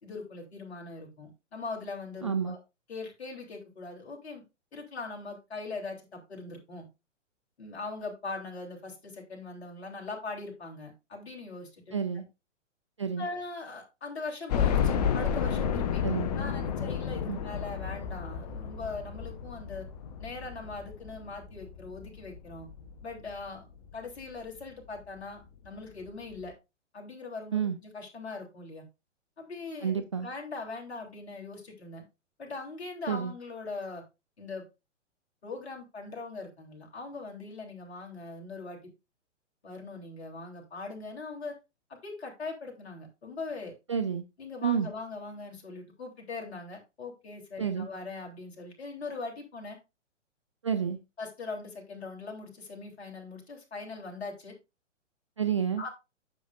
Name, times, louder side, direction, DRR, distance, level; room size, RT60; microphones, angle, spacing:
voice 1, 0.0-2.6 2.9-4.4 4.7-6.9 7.6-12.2 13.2-16.0 16.4-19.9 20.2-22.7 23.0-23.7 23.9-26.5 26.9-28.8 29.4-32.0 32.4-34.0 34.4-34.7 35.4-38.8 39.6-41.5 41.9-43.8 44.4-49.8 51.2-54.5 55.8-55.9, left 3 dB, 55° left, 0 dB, 3.3 m, -41 dB
voice 2, 2.2-2.6 11.9-12.2 13.0-13.3 16.0-16.3 17.3-17.4 27.5-27.8 29.8-30.3 33.1-33.3 43.9-44.2 44.6-44.9 47.6-47.9 50.6-51.0 55.4-55.8, right 7 dB, 25° right, 8 dB, 0.3 m, -29 dB
sound 1, 14.5-23.4 23.9-24.0 24.4-24.5 25.6-25.7 26.0-26.1, left 7 dB, 35° left, 0.8 m, -31 dB
9.5 x 7.0 x 2.5 m, 0.25 s
figure-of-eight pair, 120°, 37 cm